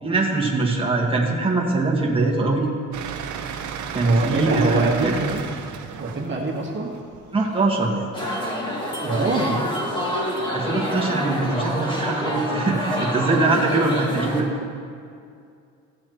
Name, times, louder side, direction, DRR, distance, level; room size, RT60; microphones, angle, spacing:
voice 1, 0.0-2.7 3.9-5.1 7.3-8.0 10.5-14.5, right 3 dB, 15° right, -3 dB, 1.7 m, -22 dB
sound 1, 2.9-7.9, right 7 dB, 75° right, 0.8 m, -33 dB
voice 2, 4.0-5.4 6.0-6.9 9.0-9.6, right 3 dB, 40° right, -3 dB, 1.6 m, -24 dB
sound 2, 8.1-14.4, equal, 15° left, 2.1 m, -27 dB
15.0 x 7.1 x 3.2 m, 2.3 s
cardioid pair, 90°, 30 cm